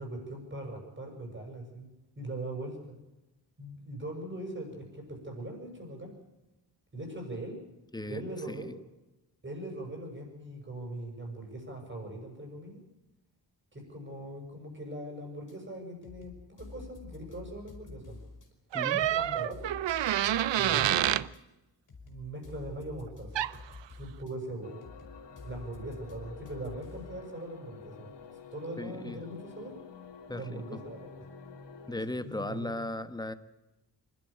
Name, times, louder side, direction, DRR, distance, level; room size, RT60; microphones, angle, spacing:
voice 1, 0.0-1.9 2.2-3.0 3.6-6.1 6.9-7.6 8.0-8.7 9.4-12.8 13.7-18.2 18.9-19.7 20.6-21.1 22.0-23.4 24.0-24.8 25.4-28.1 28.5-29.8 30.3-31.2 32.0-32.7, right 1 dB, 25° right, 3 dB, 6.8 m, -41 dB
sound 1, 15.5-15.6 16.0-18.5 19.0-21.4 21.9-24.3 24.8-27.2, left 3 dB, 45° left, 4.7 m, -49 dB
sound 2, 18.7-21.3 23.3-23.6, right 12 dB, 85° right, 0.7 m, -27 dB
sound 3, 24.6-32.0, left 5 dB, 70° left, 2.7 m, -49 dB
voice 2, 28.8-29.2 30.3-30.8 31.9-33.3, left 2 dB, 10° left, 11 dB, 1.1 m, -37 dB
26.0 x 12.5 x 8.8 m, 0.99 s
wide cardioid pair, 145°, 43 cm